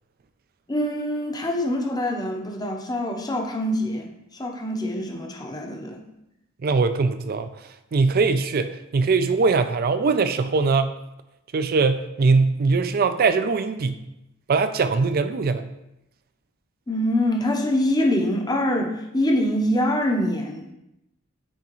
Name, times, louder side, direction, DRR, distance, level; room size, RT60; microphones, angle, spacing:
voice 1, 0.7-6.0 16.9-20.7, left 1 dB, 20° left, 2 dB, 0.7 m, -24 dB
voice 2, 6.6-7.5 7.9-10.9 11.5-14.0 14.5-15.7, right 4 dB, 50° right, 10 dB, 0.4 m, -21 dB
8.8 x 3.5 x 3.0 m, 0.86 s
head